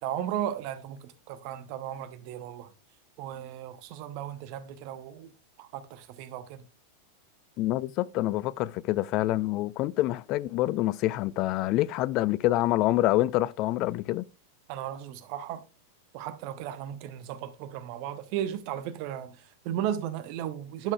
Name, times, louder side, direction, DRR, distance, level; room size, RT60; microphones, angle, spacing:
voice 1, 0.0-2.7 3.2-5.3 5.6-6.7 14.7-15.6 16.1-20.9, right 11 dB, 45° right, 0.8 m, -35 dB
voice 2, 7.6-14.2, left 16 dB, 40° left, 0.3 m, -26 dB
10.5 x 6.0 x 2.3 m
figure-of-eight pair, 90°, 0 cm